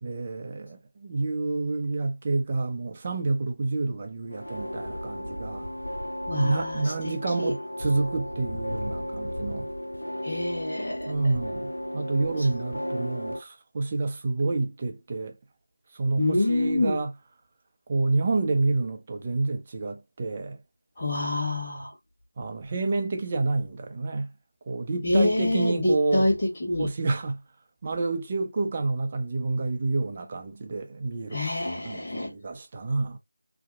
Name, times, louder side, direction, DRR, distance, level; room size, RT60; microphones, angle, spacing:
voice 1, 0.0-5.7 6.3-9.7 11.1-15.4 15.9-17.1 17.9-20.6 22.4-24.3 24.7-26.3 26.8-27.4 27.8-31.4 31.8-33.2, right 3 dB, 25° right, 0.4 m, -28 dB
sound 1, 4.3-13.4, equal, 80° left, 0.6 m, -34 dB
voice 2, 6.3-7.1 7.4-7.5 10.2-11.1 16.2-17.0 21.0-21.9 25.0-26.3 26.6-26.9 31.3-32.3, left 2 dB, 30° left, 1.2 m, -26 dB
2.7 x 2.1 x 2.3 m
figure-of-eight pair, 170°, 0 cm